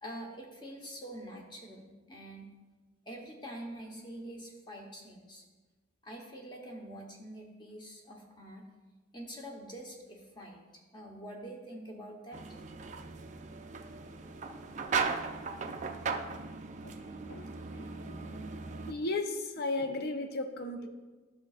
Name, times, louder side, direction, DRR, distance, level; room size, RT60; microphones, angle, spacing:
voice 1, 0.0-2.5 3.1-5.4 6.0-8.7 9.1-10.6 10.9-12.4, right 1 dB, 20° left, -1 dB, 1.0 m, -45 dB
sound 1, 12.3-18.9, right 5 dB, 35° right, 0.4 m, -37 dB
voice 2, 18.9-20.9, left 2 dB, 50° left, 6 dB, 0.6 m, -34 dB
11.5 x 6.4 x 2.4 m, 1.3 s
head